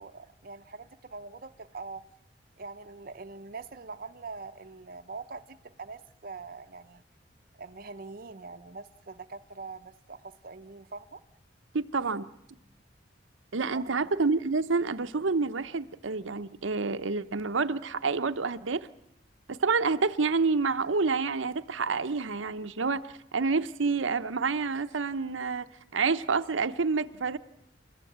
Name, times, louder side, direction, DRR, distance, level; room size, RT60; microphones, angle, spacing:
voice 1, 0.0-2.0 2.6-7.0 7.6-11.2 13.7-14.0, right 4 dB, 50° right, 0.8 m, -43 dB
voice 2, 11.7-12.3 13.5-18.9 19.5-25.7 25.9-27.4, right 4 dB, 90° right, 0.8 m, -28 dB
29.5 x 14.5 x 8.7 m
head